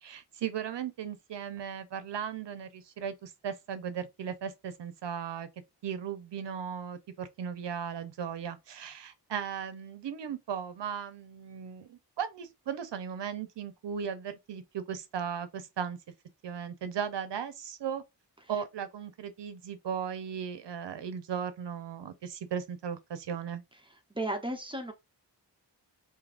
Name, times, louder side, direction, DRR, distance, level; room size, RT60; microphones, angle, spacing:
voice 1, 0.0-5.5 5.8-16.0 16.4-18.0 18.5-23.6, right 8 dB, 75° right, 0.7 m, -37 dB
voice 2, 24.1-24.9, right 1 dB, 10° right, 0.9 m, -33 dB
3.6 x 2.7 x 2.5 m
wide cardioid pair, 75°, 43 cm